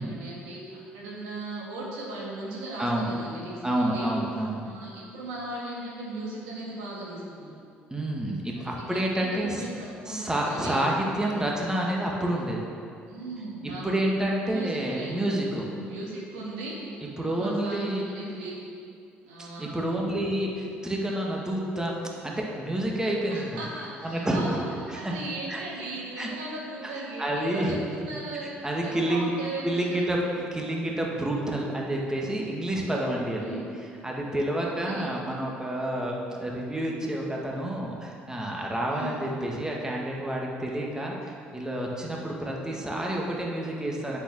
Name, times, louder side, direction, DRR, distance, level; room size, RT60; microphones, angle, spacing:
voice 1, 0.0-7.5 8.5-9.7 10.0-10.9 11.2-11.4 13.1-14.0 14.4-15.3 15.7-16.7 17.3-18.6 19.2-19.9 23.3-30.1 33.4-33.7 34.6-35.1 38.9-39.2, right 2 dB, 85° right, -5 dB, 2.2 m, -38 dB
voice 2, 2.8-3.1 3.6-4.6 7.9-9.6 10.1-12.6 13.8-15.7 17.0-18.0 19.4-21.9 22.2-23.6 24.0-24.6 24.9-25.1 25.5-25.6 26.2-26.3 26.8-26.9 27.2-27.7 28.4-29.3 29.6-30.2 30.5-44.2, right 1 dB, 15° right, -2 dB, 1.8 m, -29 dB
8.0 x 6.3 x 6.1 m, 2.4 s
hypercardioid pair, 60°, 5 cm